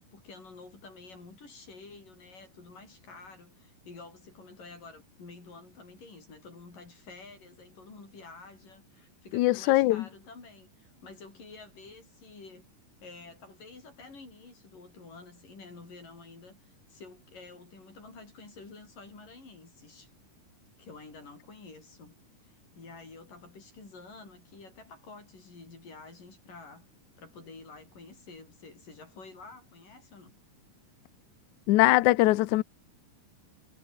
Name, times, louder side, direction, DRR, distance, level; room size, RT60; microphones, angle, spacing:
voice 1, 0.0-12.7 13.0-20.1 20.8-22.1 22.4-26.9 27.2-30.4, left 3 dB, 60° left, 9.7 m, -49 dB
voice 2, 9.3-10.0 31.7-32.6, left 18 dB, 85° left, 1.8 m, -22 dB
omnidirectional pair, 4.3 m